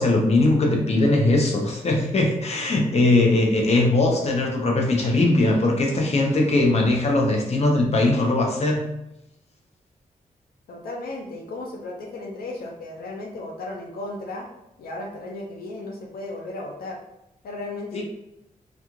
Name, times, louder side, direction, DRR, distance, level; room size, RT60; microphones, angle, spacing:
voice 1, 0.0-8.9 17.9-18.0, left 2 dB, 45° left, 0 dB, 0.7 m, -20 dB
voice 2, 3.0-3.4 10.7-14.5 14.8-17.0 17.4-18.0, left 2 dB, 85° left, 0 dB, 0.5 m, -35 dB
2.3 x 2.3 x 3.0 m, 0.86 s
cardioid pair, 80°, 15 cm